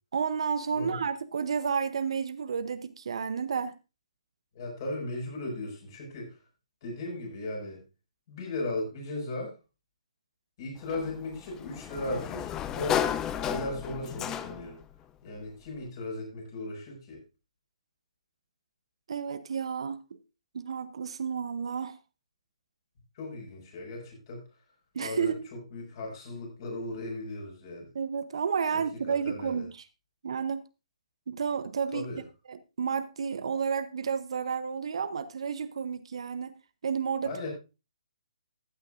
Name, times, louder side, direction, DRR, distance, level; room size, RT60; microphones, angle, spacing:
voice 1, 0.1-3.7 19.1-20.0 20.5-22.0 24.9-25.5 27.9-29.8 30.2-30.6 31.3-32.1 32.5-36.5 36.8-37.3, right 6 dB, 55° right, 0.8 m, -31 dB
voice 2, 4.5-6.4 6.8-7.8 8.3-9.6 10.6-13.0 13.4-14.8 15.2-17.2 23.2-24.4 25.0-27.9 28.7-28.8 29.1-29.6 31.9-32.2 37.2-37.5, left 2 dB, 40° left, 5.8 m, -37 dB
Sliding door, 10.9-14.8, left 9 dB, 15° left, 0.5 m, -33 dB
14.5 x 9.4 x 2.5 m
figure-of-eight pair, 135°, 3 cm